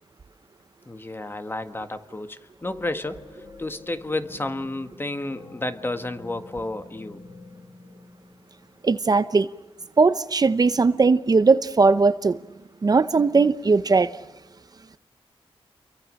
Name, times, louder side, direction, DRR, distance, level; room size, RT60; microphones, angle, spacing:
voice 1, 0.9-3.2 3.6-7.2, left 2 dB, 20° left, 1.7 m, -31 dB
sound 1, 1.9-2.3 2.6-9.3, left 3 dB, 40° left, 2.6 m, -47 dB
voice 2, 8.8-9.5 10.0-12.4 12.8-14.2, right 4 dB, 40° right, 0.8 m, -19 dB
30.0 x 23.5 x 6.5 m
wide cardioid pair, 95°, 10 cm